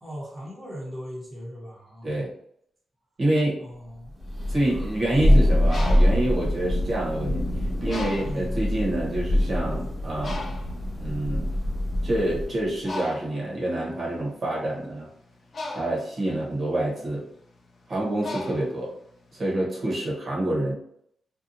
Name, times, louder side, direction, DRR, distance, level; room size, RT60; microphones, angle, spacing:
voice 1, 0.0-2.3 3.6-4.1 8.2-8.6, equal, 10° right, -6 dB, 1.0 m, -38 dB
voice 2, 3.2-3.6 4.5-7.4 7.8-10.6 11.0-11.6 12.0-15.1 15.7-17.3 17.9-18.9 19.3-20.7, right 1 dB, 45° right, -4 dB, 1.1 m, -27 dB
Thunder, 4.2-12.6, left 1 dB, 15° left, 1.3 m, -24 dB
Bird, 5.5-7.3 7.9-8.6 9.2-9.4 9.6-19.4, left 2 dB, 50° left, 0.5 m, -38 dB
2.7 x 2.3 x 2.6 m, 0.70 s
cardioid pair, 90°, 0 cm